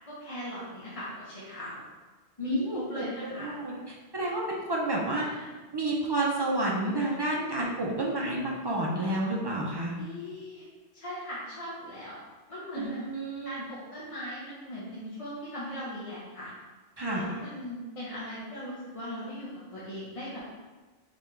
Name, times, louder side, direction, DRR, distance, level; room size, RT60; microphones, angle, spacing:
voice 1, 0.1-1.8 2.4-3.5 5.1-5.5 9.9-10.6 10.9-12.2 12.5-13.0 13.4-16.5 17.1-20.5, equal, 35° left, -8 dB, 0.8 m, -39 dB
voice 2, 2.4-3.8 4.1-5.3 5.7-9.9 12.7-13.6 17.0-17.2, right 2 dB, 35° right, -3 dB, 0.4 m, -30 dB
4.1 x 3.7 x 3.2 m, 1.2 s
omnidirectional pair, 1.2 m